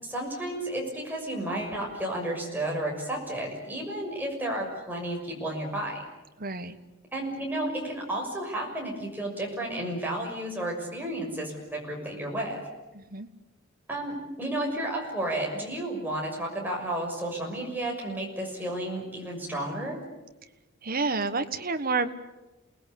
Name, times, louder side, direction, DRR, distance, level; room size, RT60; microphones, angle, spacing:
voice 1, 0.0-6.0 7.1-12.6 13.9-20.0, right 1 dB, 10° right, -1 dB, 6.4 m, -32 dB
voice 2, 6.4-6.8 13.1-13.3 20.8-22.1, right 4 dB, 45° right, 9 dB, 1.4 m, -29 dB
28.5 x 19.5 x 8.5 m, 1.1 s
head